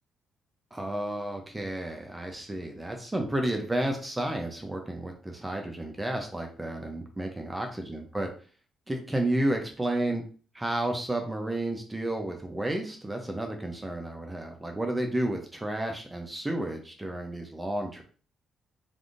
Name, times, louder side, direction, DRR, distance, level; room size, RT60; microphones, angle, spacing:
voice 1, 0.7-8.3 8.9-10.2 10.5-18.0, right 1 dB, 15° right, 3 dB, 0.6 m, -31 dB
3.3 x 2.6 x 2.5 m, 0.40 s
cardioid pair, 90°, 0 cm